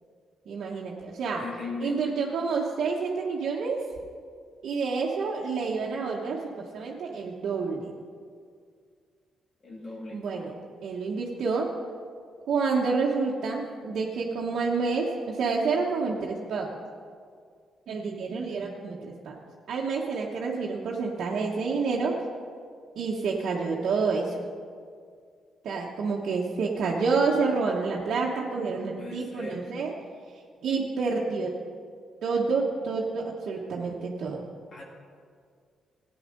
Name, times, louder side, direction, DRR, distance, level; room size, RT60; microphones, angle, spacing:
voice 1, 0.5-1.4 1.8-3.8 4.6-8.0 10.1-10.5 10.8-11.7 12.5-16.7 17.9-19.4 19.7-22.1 23.0-24.4 25.6-29.9 30.6-31.5 32.2-34.5, right 4 dB, 70° right, -4 dB, 1.2 m, -28 dB
voice 2, 1.4-2.0 9.6-10.6 18.4-18.5 28.7-29.7 34.7-34.8, left 3 dB, 50° left, -2 dB, 2.0 m, -39 dB
14.0 x 10.0 x 5.3 m, 2.1 s
cardioid pair, 85°, 0 cm